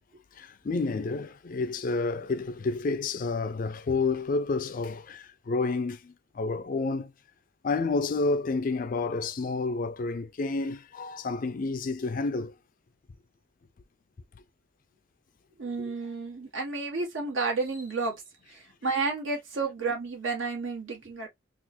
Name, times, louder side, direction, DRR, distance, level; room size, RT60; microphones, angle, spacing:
voice 1, 0.3-7.1 7.6-12.5, left 3 dB, 40° left, 0.3 m, -30 dB
voice 2, 15.6-18.1 18.5-21.3, right 4 dB, 70° right, 1.7 m, -31 dB
4.1 x 2.4 x 2.6 m
head